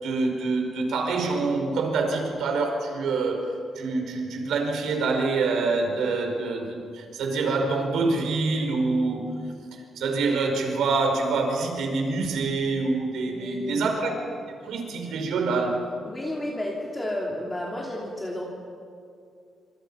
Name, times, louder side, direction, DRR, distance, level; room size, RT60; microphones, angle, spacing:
voice 1, 0.0-9.3 10.0-14.2 14.6-15.8, right 3 dB, 85° right, 3 dB, 5.5 m, -26 dB
voice 2, 13.2-13.9 16.0-18.4, left 1 dB, 15° left, -3 dB, 2.9 m, -32 dB
29.5 x 26.0 x 5.8 m, 2.4 s
wide cardioid pair, 170°, 0 cm